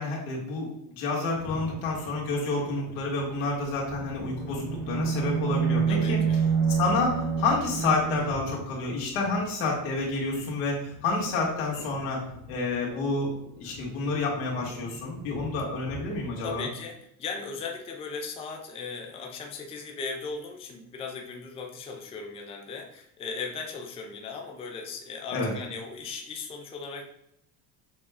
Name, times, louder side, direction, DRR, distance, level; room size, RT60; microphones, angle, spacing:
voice 1, 0.0-6.2 6.8-13.3 13.6-16.7 25.3-25.5, left 3 dB, 80° left, -2 dB, 1.8 m, -29 dB
sound 1, 1.3-16.6, left 2 dB, 65° left, 1.5 m, -45 dB
sound 2, 3.9-8.3, right 6 dB, 60° right, 1.3 m, -27 dB
voice 2, 5.9-6.4 16.4-27.1, left 4 dB, 15° left, 2 dB, 0.4 m, -37 dB
6.4 x 2.3 x 3.5 m, 0.76 s
cardioid pair, 145°, 42 cm